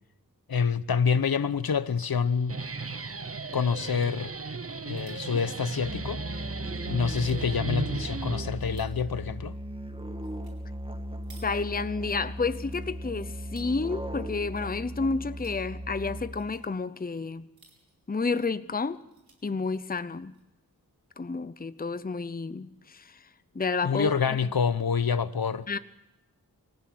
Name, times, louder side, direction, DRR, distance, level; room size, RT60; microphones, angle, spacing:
voice 1, 0.5-2.6 3.5-4.3 4.8-6.2 6.9-9.6 23.8-25.7, left 6 dB, 80° left, 1.0 m, -27 dB
sound 1, 1.5-1.7 2.0-2.1 2.4-2.5 3.5-4.1 4.6-6.4 6.9-7.4 8.0-9.1 10.2-10.6 10.8-12.1 12.5-13.8 14.2-14.8 15.1-15.6 16.2-16.6 17.3-18.1 18.5-18.6 18.9-19.4 20.1-20.4, right 3 dB, 80° right, 5.5 m, -60 dB
Guitar, 2.3-8.9, right 3 dB, 40° right, 1.0 m, -36 dB
Musical instrument, 5.8-16.6, equal, 15° right, 1.8 m, -37 dB
voice 2, 11.4-17.5 18.1-19.0 19.4-20.3 21.2-23.3 23.5-24.1 25.7-25.8, left 4 dB, 25° left, 0.7 m, -30 dB
25.5 x 15.0 x 7.8 m
wide cardioid pair, 65°, 36 cm